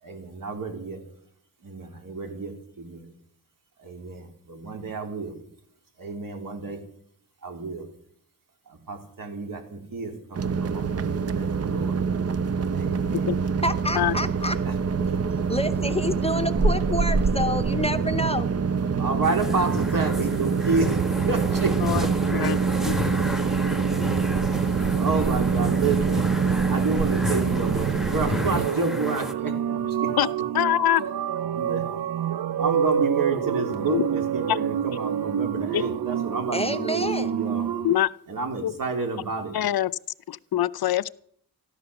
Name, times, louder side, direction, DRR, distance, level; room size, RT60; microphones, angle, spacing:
voice 1, 0.0-1.0 1.6-3.1 3.8-5.4 6.0-6.8 7.4-7.9 8.7-12.0 12.7-13.3 14.6-15.2 19.0-21.0 21.2-21.7 22.0-22.1 22.4-22.5 24.5-24.7 25.0-26.3 26.7-30.1 31.5-31.8 32.6-37.7 38.3-39.5, right 4 dB, 60° right, 3 dB, 3.5 m, -30 dB
sound 1, 10.3-28.7, right 5 dB, 40° right, 0.7 m, -25 dB
voice 2, 13.6-14.6 15.5-18.5 36.5-37.3, left 1 dB, 15° left, 10 dB, 0.8 m, -27 dB
sound 2, 19.2-29.3, left 1 dB, ahead, 1.1 m, -33 dB
sound 3, 28.3-38.0, right 9 dB, 85° right, 0.8 m, -28 dB
voice 3, 30.5-31.1 33.9-34.0 34.5-34.6 35.7-35.8 37.8-38.1 38.6-38.7 39.5-39.9 40.3-41.1, left 12 dB, 70° left, 17 dB, 0.6 m, -23 dB
14.5 x 11.5 x 6.9 m, 0.65 s
wide cardioid pair, 115°, 37 cm